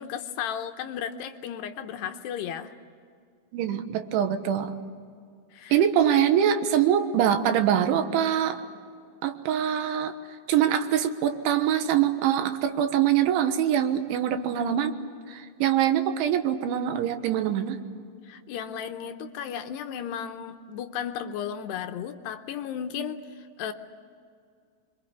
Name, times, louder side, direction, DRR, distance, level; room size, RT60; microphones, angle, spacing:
voice 1, 0.0-2.7 5.5-5.8 18.2-23.7, left 8 dB, 75° left, 7 dB, 2.8 m, -34 dB
voice 2, 3.5-4.8 5.7-8.6 9.2-10.1 10.5-15.0 15.3-17.8, right 9 dB, 85° right, 8 dB, 3.8 m, -24 dB
26.0 x 24.0 x 8.3 m, 2.2 s
omnidirectional pair, 5.3 m